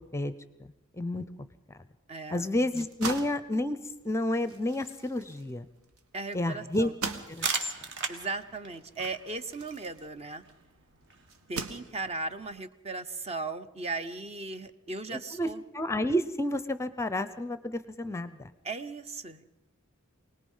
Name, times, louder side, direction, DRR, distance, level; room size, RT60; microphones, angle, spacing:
voice 1, 1.0-1.3 2.3-3.8 4.0-5.7 6.3-6.9 7.3-7.5 15.4-15.5 15.7-18.5, left 1 dB, 10° left, 12 dB, 0.6 m, -30 dB
voice 2, 2.1-2.5 6.1-7.0 8.1-10.4 11.5-15.6 18.6-19.5, right 3 dB, 30° right, 10 dB, 0.8 m, -37 dB
sound 1, 2.5-10.6 11.3-12.3, right 4 dB, 80° right, 1.6 m, -41 dB
sound 2, 7.1-12.6, right 4 dB, 55° right, 1.8 m, -39 dB
24.5 x 19.0 x 5.6 m, 0.93 s
head